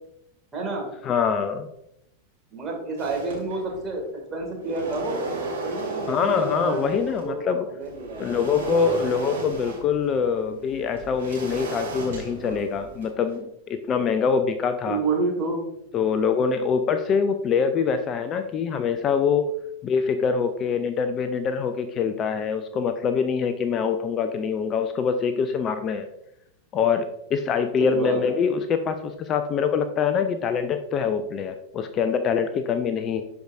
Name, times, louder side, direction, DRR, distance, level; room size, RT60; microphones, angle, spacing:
voice 1, 0.5-0.9 2.5-4.0 4.3-8.4 14.8-15.6 27.8-28.3, right 3 dB, 20° right, 0 dB, 2.2 m, -29 dB
voice 2, 1.0-1.7 6.1-7.7 8.2-15.0 15.9-19.4 19.8-26.1 26.7-33.2, left 6 dB, 30° left, 9 dB, 0.5 m, -24 dB
sound 1, 3.0-3.9 4.4-7.3 7.8-13.4, right 3 dB, 60° right, 2.4 m, -35 dB
11.5 x 4.7 x 2.6 m, 0.81 s
figure-of-eight pair, 90°, 0 cm